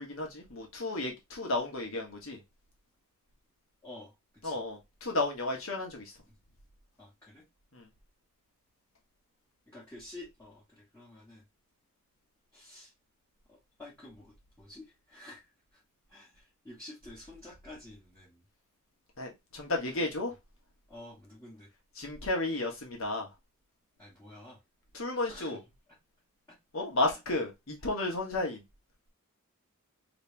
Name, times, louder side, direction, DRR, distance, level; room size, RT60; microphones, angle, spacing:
voice 1, 0.0-2.4 4.4-6.1 7.7-7.9 19.2-20.3 22.0-23.3 24.9-25.6 26.7-28.6, left 2 dB, 70° left, 1.4 m, -33 dB
voice 2, 3.8-4.1 4.4-4.6 6.3-6.4 7.0-7.4 9.7-11.4 12.5-12.9 13.5-15.8 16.1-18.4 20.9-21.7 24.0-24.6 25.3-25.6, left 2 dB, 10° left, 1.4 m, -50 dB
3.3 x 3.0 x 3.4 m
head